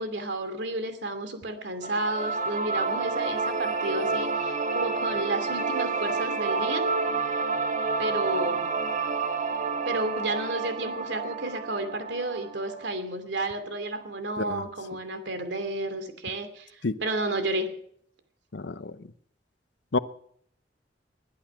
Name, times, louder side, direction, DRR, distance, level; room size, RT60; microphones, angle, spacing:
voice 1, 0.0-6.9 8.0-8.8 9.8-17.8, right 2 dB, 80° right, 2.6 m, -32 dB
sound 1, 1.8-12.9, right 4 dB, 45° right, 1.1 m, -29 dB
voice 2, 18.5-18.9 19.9-20.0, left 3 dB, 80° left, 0.8 m, -28 dB
21.0 x 11.5 x 6.0 m
head